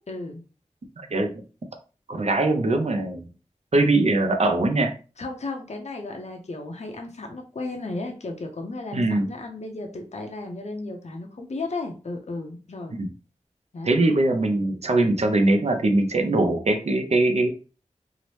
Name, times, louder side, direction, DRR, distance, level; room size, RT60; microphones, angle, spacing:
voice 1, 0.1-0.4 5.2-13.0 13.7-14.0, left 2 dB, 60° left, 3 dB, 0.6 m, -34 dB
voice 2, 1.0-1.3 2.1-3.3 3.7-4.9 8.9-9.3 12.9-13.1 13.8-17.5, right 2 dB, 55° right, 5 dB, 0.6 m, -21 dB
2.8 x 2.0 x 3.1 m, 0.36 s
wide cardioid pair, 50°, 13 cm